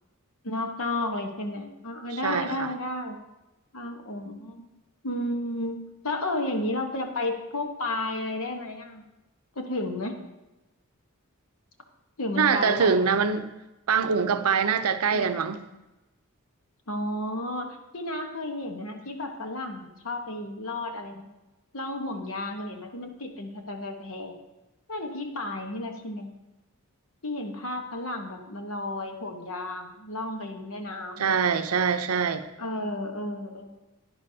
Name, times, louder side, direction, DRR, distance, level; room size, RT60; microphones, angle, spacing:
voice 1, 0.4-3.2 3.7-4.6 5.0-9.0 9.5-10.1 12.2-13.0 16.9-21.3 21.7-24.4 24.9-26.3 27.2-31.4 32.6-33.8, left 1 dB, 65° left, 1.1 m, -32 dB
voice 2, 2.2-2.7 12.4-13.5 13.9-15.6 31.2-32.4, right 6 dB, 80° right, 0.6 m, -24 dB
10.5 x 10.0 x 2.8 m
head